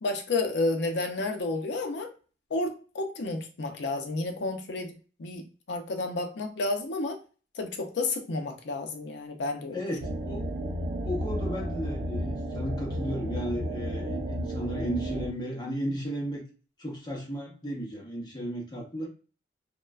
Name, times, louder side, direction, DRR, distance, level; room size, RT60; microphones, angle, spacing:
voice 1, 0.0-2.1 2.5-7.2 7.6-9.8, left 2 dB, 65° left, 5 dB, 0.5 m, -31 dB
voice 2, 9.7-10.5 11.0-16.4 16.8-19.1, equal, 25° left, -1 dB, 0.7 m, -34 dB
sound 1, 10.0-15.3, equal, 70° right, 0.8 m, -32 dB
3.0 x 2.1 x 2.3 m, 0.37 s
head